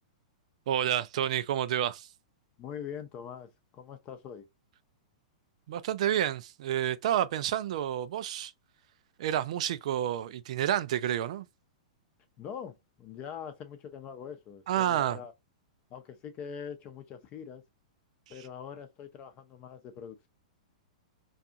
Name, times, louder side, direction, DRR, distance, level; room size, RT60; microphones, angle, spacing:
voice 1, 0.7-2.1 5.7-8.5 9.2-11.5 14.7-15.2, right 11 dB, 65° right, 0.3 m, -29 dB
voice 2, 2.6-4.5 12.4-15.3 15.9-17.6 18.3-20.3, left 7 dB, 30° left, 0.6 m, -43 dB
2.5 x 2.4 x 2.7 m
hypercardioid pair, 135°, 4 cm